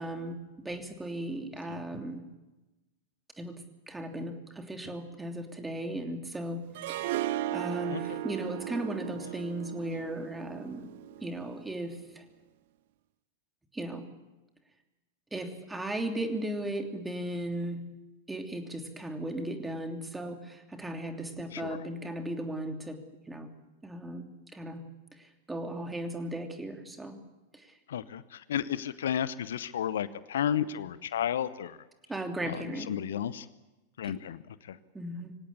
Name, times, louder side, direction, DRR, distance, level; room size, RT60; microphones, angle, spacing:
voice 1, 0.0-2.2 3.4-3.5 3.9-10.9 11.2-12.2 13.7-14.0 15.3-17.8 18.3-23.0 23.3-23.5 23.8-24.8 25.1-27.2 27.5-27.7 32.1-32.9 34.0-34.1 34.9-35.4, right 1 dB, 10° right, 4 dB, 3.0 m, -36 dB
Harp, 6.7-11.8, right 14 dB, 55° right, 0.8 m, -36 dB
voice 2, 7.9-8.2 21.5-21.9 27.9-31.8 32.4-33.5 34.0-34.8, left 9 dB, 65° left, 16 dB, 0.8 m, -33 dB
25.0 x 17.5 x 8.4 m, 1.1 s
figure-of-eight pair, 95°, 0 cm